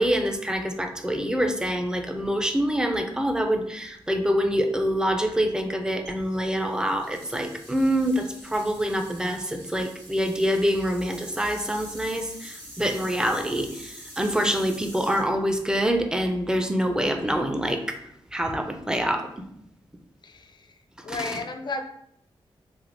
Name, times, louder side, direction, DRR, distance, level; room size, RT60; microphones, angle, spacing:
voice 1, 0.0-18.0 18.3-19.3 21.1-21.3, equal, 5° right, 6 dB, 0.4 m, -26 dB
sound 1, 6.0-16.2, right 1 dB, 80° right, 1.2 m, -45 dB
voice 2, 20.2-20.8 21.0-21.9, left 3 dB, 50° left, 6 dB, 0.4 m, -33 dB
3.3 x 2.7 x 2.6 m, 0.73 s
cardioid pair, 70°, 10 cm